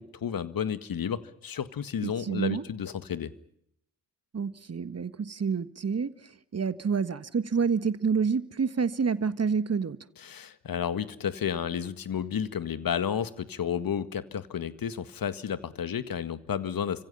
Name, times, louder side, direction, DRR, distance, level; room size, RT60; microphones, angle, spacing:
voice 1, 0.0-3.3 10.2-17.0, left 8 dB, 45° left, 1.9 m, -32 dB
voice 2, 2.0-2.6 4.3-6.1 6.5-10.0, right 5 dB, 30° right, 1.7 m, -28 dB
29.5 x 26.0 x 5.7 m
hypercardioid pair, 45°, 48 cm